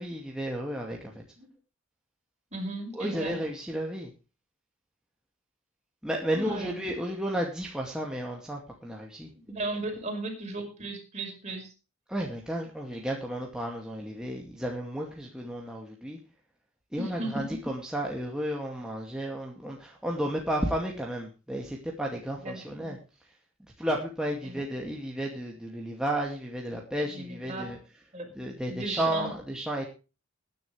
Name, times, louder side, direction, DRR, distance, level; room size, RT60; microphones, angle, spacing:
voice 1, 0.0-1.2 2.9-4.1 6.0-9.3 12.1-16.2 16.9-23.0 23.8-27.8 28.4-29.8, right 1 dB, 5° right, -1 dB, 2.3 m, -33 dB
voice 2, 2.5-3.4 6.4-6.8 9.5-11.7 17.0-17.6 22.4-23.0 24.4-24.6 27.1-27.7 28.1-28.3 28.7-29.3, right 2 dB, 35° right, 2 dB, 5.5 m, -36 dB
20.5 x 10.5 x 3.3 m, 0.32 s
head